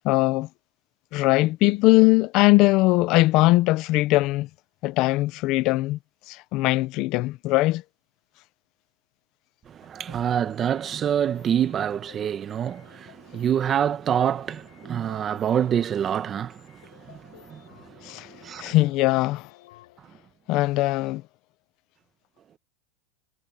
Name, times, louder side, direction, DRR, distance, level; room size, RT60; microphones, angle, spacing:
voice 1, 0.0-0.5 1.1-4.5 4.8-6.0 6.3-7.8 18.0-18.3 18.6-19.5 20.5-21.2, left 20 dB, 45° left, 0.7 m, -20 dB
voice 2, 9.7-18.7, right 9 dB, 25° right, 1.3 m, -27 dB
sound 1, 9.8-20.0, left 18 dB, 70° left, 6.3 m, -54 dB
supercardioid pair, 155°, 0 cm